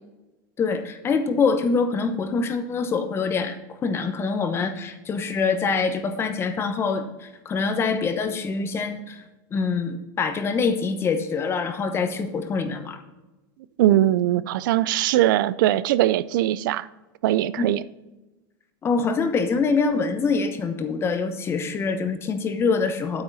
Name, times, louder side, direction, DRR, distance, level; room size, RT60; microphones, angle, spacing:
voice 1, 0.6-9.2 9.5-13.0 17.6-17.7 18.8-23.2, left 4 dB, 20° left, 8 dB, 0.9 m, -25 dB
voice 2, 13.8-16.9 17.2-17.8, right 13 dB, 75° right, 17 dB, 0.4 m, -21 dB
8.7 x 8.7 x 4.0 m, 1.1 s
supercardioid pair, 140°, 11 cm